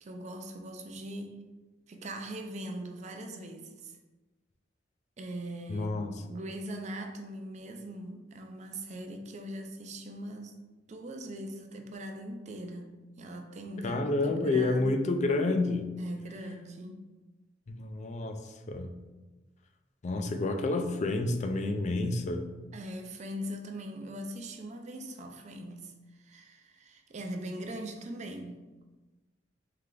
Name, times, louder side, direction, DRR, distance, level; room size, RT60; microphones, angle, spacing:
voice 1, 0.0-1.4 1.9-4.0 5.2-10.5 10.9-14.9 16.0-17.0 22.7-28.6, right 1 dB, 40° right, 4 dB, 0.4 m, -41 dB
voice 2, 5.7-6.1 13.8-15.9 17.7-18.9 20.0-22.5, left 2 dB, 40° left, 6 dB, 0.4 m, -29 dB
3.3 x 3.3 x 3.7 m, 1.2 s
head